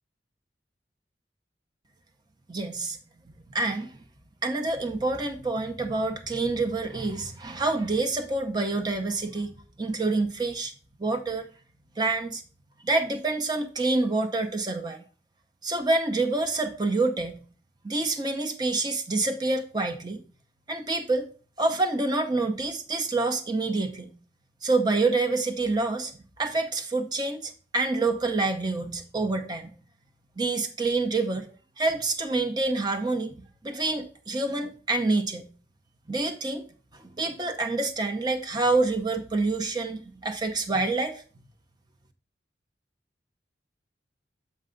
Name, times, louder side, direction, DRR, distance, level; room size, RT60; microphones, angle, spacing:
voice 1, 2.5-3.0 3.5-3.9 4.4-9.5 9.8-10.7 11.0-11.5 12.0-12.4 12.8-15.0 15.6-17.4 17.8-20.2 20.7-21.3 21.6-24.1 24.6-26.1 26.4-29.7 30.4-31.4 31.8-33.3 33.6-35.4 36.1-36.6 37.2-41.2, right 3 dB, 25° right, 0.7 m, -27 dB
7.6 x 4.7 x 3.8 m
head